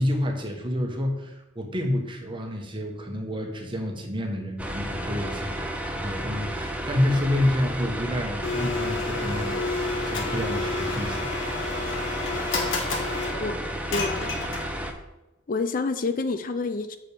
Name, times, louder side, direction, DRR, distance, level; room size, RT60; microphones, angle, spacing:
voice 1, 0.0-11.3, left 1 dB, 25° right, 2 dB, 1.3 m, -29 dB
sound 1, 4.6-14.9, right 1 dB, 5° right, 0.7 m, -32 dB
Domestic sounds home sounds, 8.4-14.9, left 3 dB, 75° left, 1.5 m, -31 dB
voice 2, 13.4-14.3 15.5-17.0, left 3 dB, 45° left, 10 dB, 0.5 m, -28 dB
6.2 x 5.2 x 6.9 m, 0.96 s
head